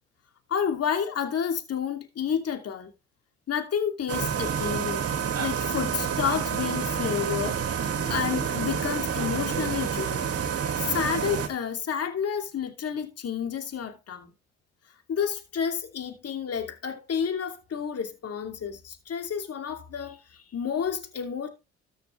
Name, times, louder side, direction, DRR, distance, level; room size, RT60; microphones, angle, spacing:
voice 1, 0.5-2.9 3.5-5.0 5.4-7.8 8.1-10.3 10.8-14.3 15.1-20.2 20.5-21.5, left 8 dB, 55° left, 2.7 m, -30 dB
sound 1, 4.1-11.5, right 7 dB, 55° right, 2.0 m, -28 dB
13.5 x 6.8 x 3.3 m
supercardioid pair, 65°, 29 cm